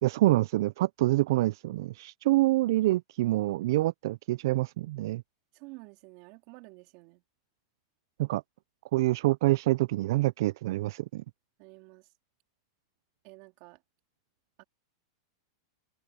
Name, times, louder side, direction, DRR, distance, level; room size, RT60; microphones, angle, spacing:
voice 1, 0.0-5.2 8.2-8.4 8.9-11.2, right 17 dB, 60° right, 0.3 m, -26 dB
voice 2, 5.5-7.2 11.6-12.1 13.2-13.8 14.6-14.7, right 25 dB, 45° right, 3.7 m, -50 dB
supercardioid pair, 155°, 2 cm